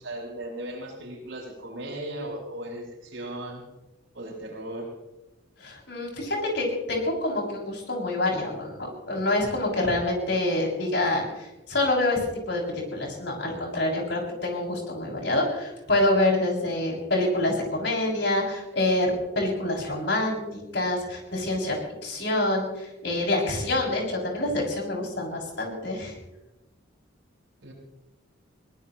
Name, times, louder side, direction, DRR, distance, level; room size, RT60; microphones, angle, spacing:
voice 1, 0.0-3.6 4.1-4.9 23.6-23.7 27.6-27.7, right 1 dB, 75° right, -2 dB, 6.4 m, -37 dB
voice 2, 5.6-12.2 12.5-26.1, left 2 dB, 60° left, -1 dB, 6.9 m, -26 dB
23.0 x 19.5 x 3.1 m, 0.99 s
head